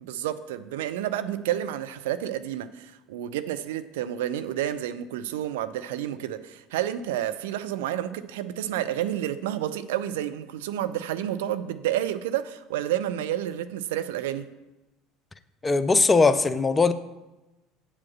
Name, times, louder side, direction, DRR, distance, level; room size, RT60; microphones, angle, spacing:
voice 1, 0.0-14.5, right 11 dB, 65° right, 0.4 m, -30 dB
voice 2, 15.6-16.9, left 4 dB, 20° left, 0.6 m, -20 dB
8.2 x 5.0 x 7.3 m
figure-of-eight pair, 65°, 0 cm